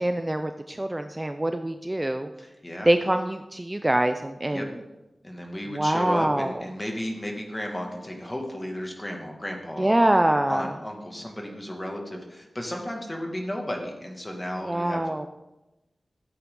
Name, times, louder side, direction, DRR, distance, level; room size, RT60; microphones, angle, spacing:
voice 1, 0.0-2.3 2.9-4.7 5.7-6.7 9.8-10.7 14.6-15.3, right 1 dB, 20° right, 7 dB, 0.5 m, -24 dB
voice 2, 2.4-2.9 4.5-4.6 5.2-10.1 10.5-15.0, left 1 dB, 20° left, 1 dB, 2.1 m, -34 dB
13.5 x 8.5 x 3.8 m, 1.0 s
wide cardioid pair, 90°, 0 cm